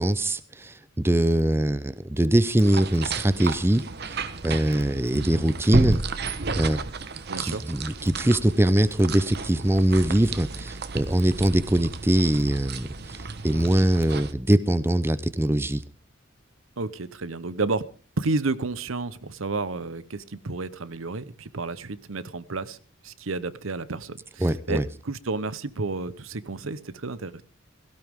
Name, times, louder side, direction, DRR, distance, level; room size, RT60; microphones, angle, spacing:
voice 1, 0.0-6.3 6.6-6.8 7.4-15.8 24.4-24.9, right 1 dB, 10° right, 15 dB, 0.6 m, -23 dB
sound 1, 2.6-14.3, right 3 dB, 55° right, 1.1 m, -32 dB
voice 2, 7.3-7.6 16.8-17.9 18.2-22.8 23.0-27.4, right 3 dB, 80° right, 15 dB, 0.9 m, -31 dB
17.0 x 16.0 x 3.6 m, 0.37 s
head